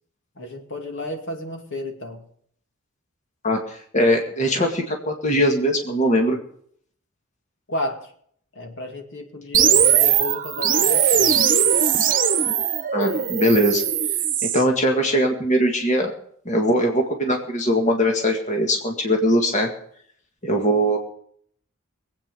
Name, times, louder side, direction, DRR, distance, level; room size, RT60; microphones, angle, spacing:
voice 1, 0.4-2.2 7.7-8.1 8.5-11.5, left 2 dB, 60° left, 4 dB, 2.3 m, -32 dB
voice 2, 3.4-6.4 12.9-13.8 14.4-16.1 16.5-19.7 20.4-21.0, equal, 35° left, 2 dB, 2.0 m, -21 dB
sound 1, 9.5-14.6, right 8 dB, 40° right, 1.1 m, -19 dB
22.5 x 8.7 x 5.4 m, 0.62 s
head